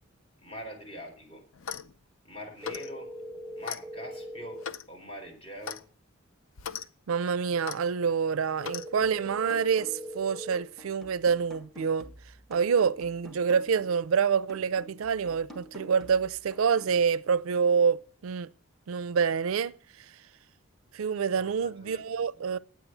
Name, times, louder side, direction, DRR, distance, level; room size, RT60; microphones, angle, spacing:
voice 1, 0.4-1.4 2.2-3.1 3.6-5.8 21.3-22.4, equal, 30° left, 4.5 m, -44 dB
Clock, 1.5-1.9 2.6-2.9 3.6-3.8 4.6-4.9 5.6-5.8 6.6-6.9 7.6-7.8 8.6-8.9, left 7 dB, 70° left, 0.6 m, -37 dB
sound 1, 2.6-4.6 8.6-10.6, equal, 20° right, 1.1 m, -41 dB
voice 2, 7.1-12.1 12.5-18.5 18.9-19.8 20.9-22.6, right 6 dB, 80° right, 0.4 m, -27 dB
sound 2, 9.0-10.2 10.5-14.1 14.5-17.0, equal, ahead, 1.6 m, -50 dB
9.4 x 8.2 x 7.8 m
head